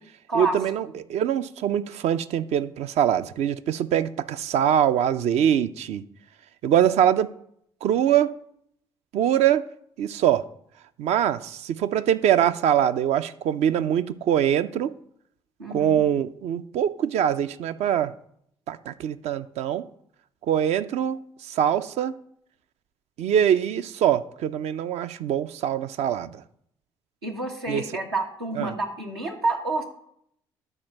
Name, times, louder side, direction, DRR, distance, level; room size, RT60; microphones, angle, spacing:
voice 1, 0.3-6.0 6.6-7.3 7.8-8.3 9.1-9.6 10.0-10.4 11.0-14.9 15.7-18.1 18.7-19.8 20.5-21.2 21.6-22.1 23.2-26.3 27.7-27.8 28.6-28.7, right 10 dB, 60° right, 0.5 m, -23 dB
voice 2, 15.6-16.0 27.2-29.8, right 2 dB, 90° right, 1.3 m, -28 dB
11.0 x 4.5 x 5.9 m
figure-of-eight pair, 45°, 13 cm